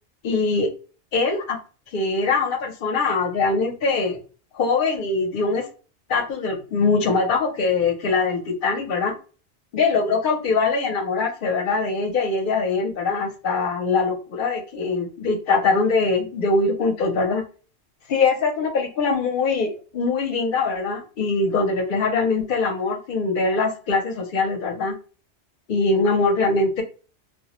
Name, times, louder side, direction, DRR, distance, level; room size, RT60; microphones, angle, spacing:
voice 1, 0.2-0.7 1.1-1.6 1.9-4.2 4.5-5.7 6.1-9.1 9.7-17.4 18.1-25.0 25.7-26.8, left 4 dB, 55° left, 5 dB, 0.7 m, -22 dB
2.2 x 2.0 x 2.9 m, 0.36 s
omnidirectional pair, 1.2 m